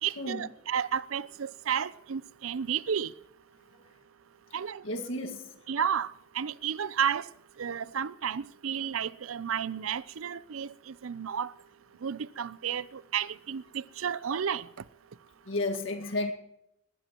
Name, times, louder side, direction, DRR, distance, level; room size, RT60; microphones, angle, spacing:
voice 1, 0.0-3.1 4.5-4.8 5.7-7.3 7.6-11.5 12.0-14.7, right 8 dB, 90° right, 0.6 m, -32 dB
voice 2, 4.8-5.5 15.5-16.3, left 2 dB, 70° left, 1.9 m, -32 dB
20.5 x 16.0 x 3.0 m
head